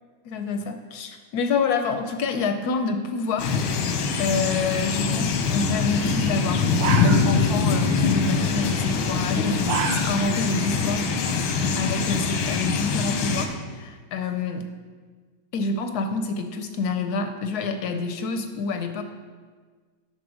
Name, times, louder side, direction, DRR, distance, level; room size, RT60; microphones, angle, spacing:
voice 1, 0.2-3.5 4.2-11.1 11.4-14.7 15.5-19.0, left 4 dB, 70° left, 7 dB, 0.9 m, -27 dB
sound 1, 3.4-13.5, left 5 dB, 90° left, 1.6 m, -24 dB
sound 2, 6.7-7.7 8.0-8.3 9.3-10.4 10.8-10.9 11.4-12.4, right 7 dB, 75° right, 1.2 m, -29 dB
10.5 x 4.2 x 6.2 m, 1.5 s
omnidirectional pair, 2.2 m